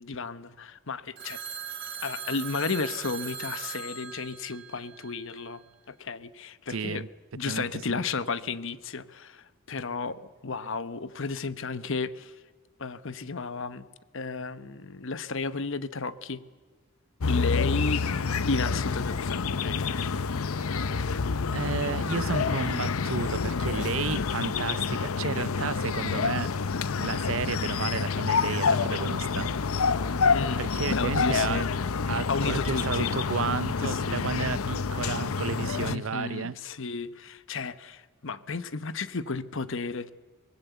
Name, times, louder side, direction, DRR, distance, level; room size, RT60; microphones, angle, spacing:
voice 1, 0.0-1.4 2.0-7.1 7.3-12.4 12.8-13.8 14.1-16.4 17.3-19.9 30.3-31.7 32.3-33.1 33.8-34.3 35.9-40.1, left 4 dB, 65° left, 1.0 m, -33 dB
Telephone, 1.2-5.4, right 7 dB, 50° right, 4.2 m, -39 dB
voice 2, 6.7-7.1 7.5-8.0 20.6-21.1 21.5-26.5 27.0-29.5 30.6-31.6 32.1-36.6, right 5 dB, 65° right, 0.7 m, -32 dB
sound 1, 17.2-36.0, left 5 dB, 85° left, 0.7 m, -28 dB
24.5 x 19.5 x 8.2 m
head